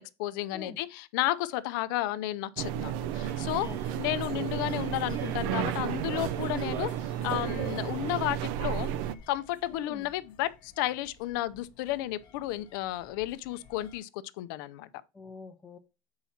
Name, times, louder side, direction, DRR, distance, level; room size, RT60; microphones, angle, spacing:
voice 1, 0.2-3.7 4.0-6.9 7.2-8.9 9.3-14.1 14.4-14.9, left 15 dB, 75° left, 0.5 m, -32 dB
sound 1, 2.6-9.1, right 11 dB, 65° right, 0.4 m, -32 dB
sound 2, 3.2-14.0, left 6 dB, 45° left, 0.9 m, -54 dB
voice 2, 3.5-4.1 9.7-10.1 15.1-15.8, left 4 dB, 10° left, 0.6 m, -45 dB
7.1 x 4.8 x 4.2 m
cardioid pair, 150°, 11 cm